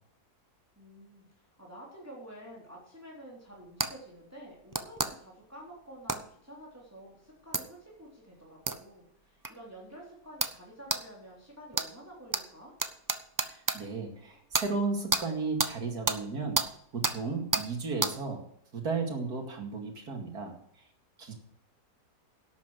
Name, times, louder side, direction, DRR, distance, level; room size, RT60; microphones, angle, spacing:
voice 1, 0.8-12.7, right 1 dB, 10° right, -3 dB, 3.6 m, -49 dB
sound 1, 3.8-3.9 4.7-5.1 6.1-6.2 7.5-7.6 8.7-8.8 9.4-9.5 10.4-10.6 10.9-11.0 11.7-11.9 12.3-12.4 12.8-13.8 14.5-14.7 15.1-15.2 15.6-15.7 16.1-16.2 16.5-16.7 17.0-17.2 17.5-17.7 18.0-18.1, right 3 dB, 30° right, 0.3 m, -29 dB
voice 2, 13.5-16.6 16.9-18.4 18.7-20.5 21.2-21.3, right 4 dB, 80° right, 3 dB, 2.8 m, -34 dB
11.5 x 8.5 x 6.4 m, 0.69 s
omnidirectional pair, 1.6 m